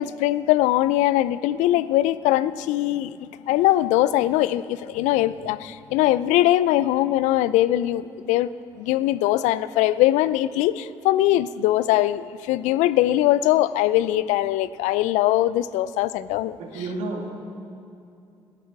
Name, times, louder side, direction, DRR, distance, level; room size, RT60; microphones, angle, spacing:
voice 1, 0.0-8.5 8.8-16.6, left 14 dB, 80° left, 17 dB, 0.4 m, -21 dB
voice 2, 16.6-17.3, right 3 dB, 75° right, 0 dB, 2.5 m, -31 dB
15.0 x 13.0 x 5.9 m, 2.6 s
hypercardioid pair, 50°, 12 cm